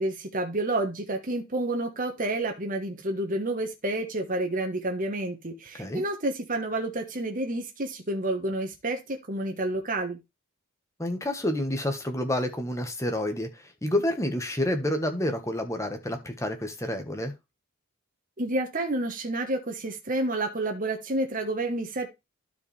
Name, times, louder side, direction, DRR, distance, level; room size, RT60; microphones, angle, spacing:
voice 1, 0.0-10.2 18.4-22.1, right 2 dB, 40° right, 1.3 m, -29 dB
voice 2, 11.0-17.3, left 1 dB, 15° left, 1.4 m, -29 dB
12.0 x 4.9 x 3.4 m
head